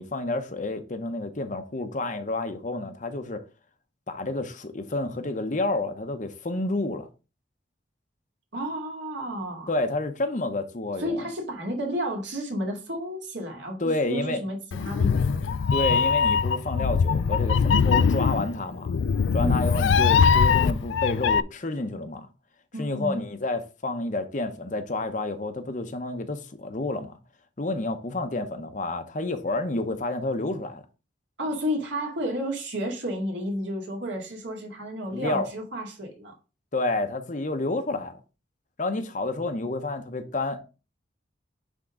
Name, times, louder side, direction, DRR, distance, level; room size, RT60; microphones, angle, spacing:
voice 1, 0.0-3.4 4.1-7.1 9.7-11.3 13.8-14.4 15.7-19.0 19.3-22.3 22.8-27.1 27.6-30.8 35.1-35.5 36.7-38.2 38.8-40.6, left 2 dB, 40° left, 0.8 m, -29 dB
voice 2, 8.5-9.7 11.0-15.6 19.4-19.7 22.7-23.2 31.4-36.3, equal, 65° right, 2.2 m, -32 dB
Meow, 14.7-21.4, left 6 dB, 70° left, 0.4 m, -22 dB
9.8 x 3.7 x 3.7 m
head